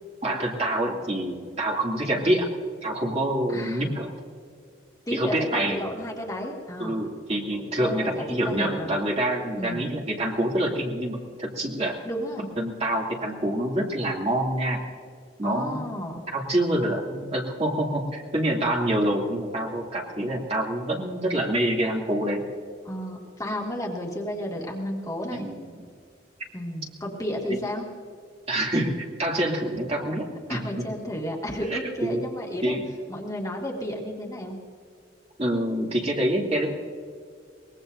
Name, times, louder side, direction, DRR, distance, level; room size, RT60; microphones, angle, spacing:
voice 1, 0.2-2.5 2.8-4.1 5.1-5.9 6.8-12.0 12.6-14.8 15.4-15.9 16.3-22.4 25.3-25.6 28.5-30.9 31.7-32.2 32.6-32.8 35.4-36.7, right 1 dB, 35° right, -1 dB, 2.5 m, -26 dB
voice 2, 3.5-3.9 5.1-7.0 7.5-9.0 9.6-9.9 12.0-12.5 15.4-16.2 22.9-25.4 26.5-27.9 30.5-32.8 33.1-34.6, equal, 20° left, -2 dB, 2.0 m, -32 dB
23.5 x 20.5 x 2.6 m, 2.1 s
head